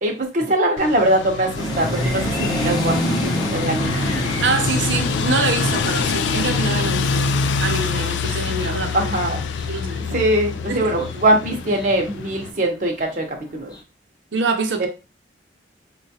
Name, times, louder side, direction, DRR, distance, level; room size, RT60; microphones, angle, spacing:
voice 1, 0.0-4.1 8.9-9.4 10.1-13.7 14.8-14.9, right 1 dB, 45° right, 0.7 m, -22 dB
sound 1, 0.8-12.5, left 5 dB, 80° left, 0.3 m, -25 dB
sound 2, 1.5-12.5 13.0-13.4 13.7-13.8, equal, 20° left, 0.7 m, -28 dB
voice 2, 4.4-7.3 7.6-9.1 9.7-10.1 10.7-10.9 14.3-14.9, right 4 dB, 85° right, 0.7 m, -25 dB
4.8 x 2.2 x 2.7 m
head